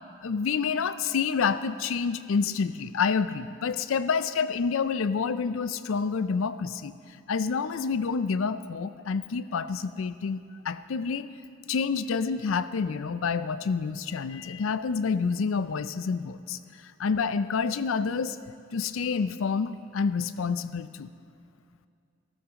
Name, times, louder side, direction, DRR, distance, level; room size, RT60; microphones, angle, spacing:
voice 1, 0.2-6.9 7.3-11.3 11.7-18.4 18.7-21.1, left 5 dB, 80° left, 13 dB, 0.4 m, -28 dB
14.5 x 13.5 x 3.7 m, 2.4 s
head